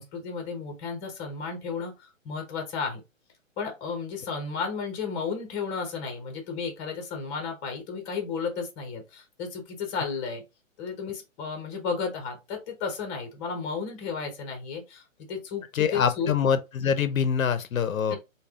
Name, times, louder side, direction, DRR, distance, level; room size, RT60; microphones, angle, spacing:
voice 1, 0.0-3.0 3.6-10.4 10.8-16.3 18.1-18.2, left 5 dB, 20° left, 0.9 m, -33 dB
voice 2, 15.7-18.2, left 7 dB, 80° left, 0.7 m, -25 dB
3.3 x 2.3 x 3.4 m
hypercardioid pair, 150°, 40 cm